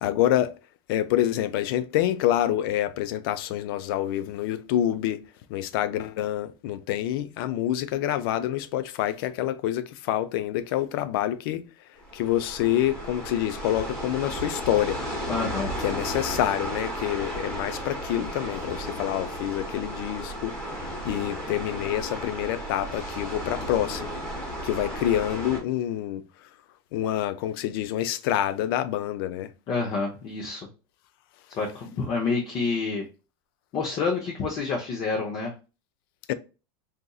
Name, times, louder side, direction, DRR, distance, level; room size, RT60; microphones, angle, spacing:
voice 1, 0.0-0.5 0.9-5.2 5.5-11.6 12.1-15.0 15.8-20.5 21.0-24.1 24.6-26.2 26.9-29.5 36.3-36.4, left 12 dB, 65° left, 0.4 m, -27 dB
sound 1, 12.0-25.6, equal, 5° left, 1.2 m, -34 dB
voice 2, 15.3-15.7 29.7-30.7 31.6-33.0 33.7-35.5, left 4 dB, 35° left, 0.7 m, -28 dB
4.1 x 2.5 x 2.3 m
supercardioid pair, 150°, 13 cm